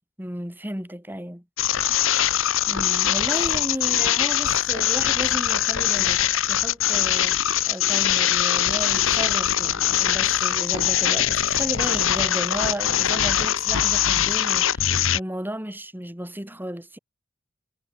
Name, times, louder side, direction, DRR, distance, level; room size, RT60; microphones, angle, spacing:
voice 1, 0.2-1.4 2.7-7.4 7.7-17.0, equal, 10° right, 5.4 m, -34 dB
sound 1, 1.6-15.2, left 11 dB, 75° left, 1.1 m, -22 dB
head